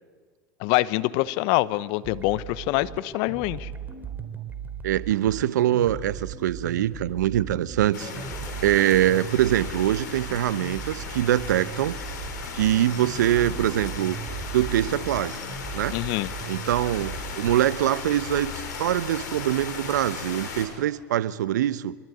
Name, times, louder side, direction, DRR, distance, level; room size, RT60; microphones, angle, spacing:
voice 1, 0.6-3.7 15.9-16.3, left 19 dB, 55° left, 18 dB, 1.0 m, -25 dB
sound 1, 2.0-17.6, right 6 dB, 20° right, 3.8 m, -38 dB
voice 2, 4.8-8.1 8.6-12.0 12.5-14.2 14.5-15.4 15.7-16.0 16.5-22.0, right 12 dB, 75° right, 18 dB, 0.9 m, -24 dB
sound 2, 7.9-20.7, left 5 dB, 75° left, 5.9 m, -36 dB
25.0 x 23.5 x 9.6 m, 1.5 s
hypercardioid pair, 85°, 10 cm